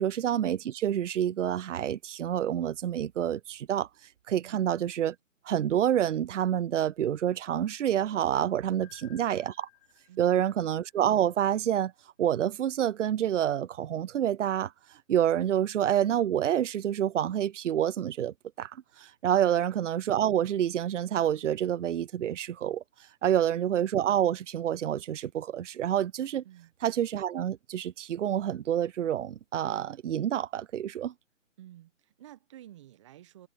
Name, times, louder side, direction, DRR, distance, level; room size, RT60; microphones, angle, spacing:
voice 1, 0.0-3.9 4.3-5.2 5.5-9.7 10.2-11.9 12.2-14.7 15.1-18.7 19.0-22.8 23.2-26.4 26.8-31.1, right 10 dB, 65° right, 0.5 m, -28 dB
sound 1, 8.8-11.8, left 22 dB, 10° left, 0.9 m, -59 dB
voice 2, 10.1-10.5 26.4-26.7 31.6-33.5, right 13 dB, 25° right, 1.3 m, -52 dB
figure-of-eight pair, 150°, 39 cm